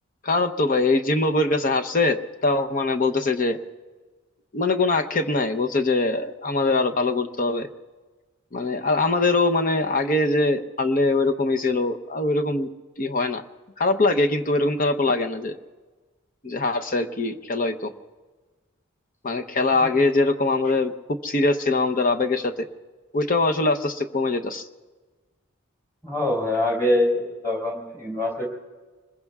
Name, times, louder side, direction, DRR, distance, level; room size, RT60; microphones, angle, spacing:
voice 1, 0.2-2.2 2.4-3.6 4.5-7.7 8.5-12.7 13.0-13.4 13.8-15.6 16.4-17.9 19.2-20.9 21.2-22.5 23.1-24.7, left 2 dB, 40° left, 6 dB, 0.8 m, -22 dB
voice 2, 26.0-28.5, left 1 dB, 15° left, -3 dB, 4.5 m, -24 dB
25.5 x 21.5 x 2.4 m, 1.3 s
head